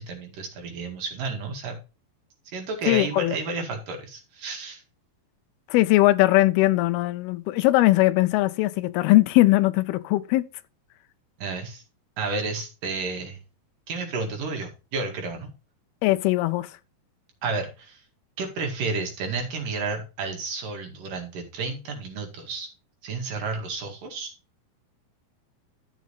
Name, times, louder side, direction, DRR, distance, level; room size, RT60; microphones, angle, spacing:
voice 1, 0.0-1.8 2.5-4.8 11.4-11.8 12.2-13.4 13.9-15.5 17.4-18.0 18.4-22.7 23.0-24.3, right 3 dB, 60° right, 3.5 m, -31 dB
voice 2, 2.9-3.3 5.7-10.5 16.0-16.7, left 18 dB, 85° left, 2.6 m, -20 dB
12.5 x 6.5 x 3.2 m
omnidirectional pair, 4.4 m